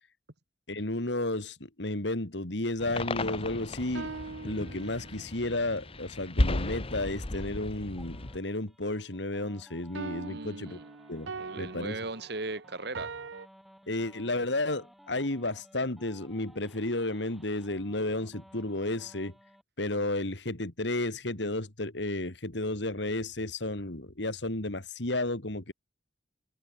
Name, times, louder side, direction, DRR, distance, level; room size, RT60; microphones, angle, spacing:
voice 1, 0.7-4.1 4.4-10.8 11.1-11.3 11.6-12.0 13.9-19.3 19.8-25.7, left 2 dB, 70° left, 2.8 m, -32 dB
sound 1, 2.8-8.4, left 2 dB, 30° left, 1.1 m, -34 dB
sound 2, 3.5-5.4 10.0-13.5, right 4 dB, 90° right, 0.8 m, -42 dB
sound 3, 8.0-19.6, equal, ahead, 4.0 m, -57 dB
voice 2, 10.3-10.9 11.4-13.1, right 3 dB, 65° right, 2.7 m, -38 dB
head